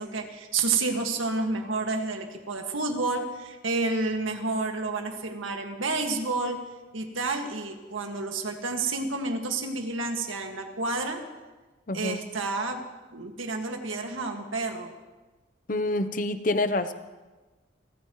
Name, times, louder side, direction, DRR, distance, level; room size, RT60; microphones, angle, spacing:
voice 1, 0.0-6.6 6.9-11.2 11.9-12.8 13.1-14.9, right 3 dB, 90° right, 3 dB, 1.9 m, -30 dB
voice 2, 11.9-12.2 15.7-16.9, left 2 dB, 45° left, 11 dB, 0.7 m, -27 dB
29.0 x 14.0 x 3.1 m, 1.2 s
head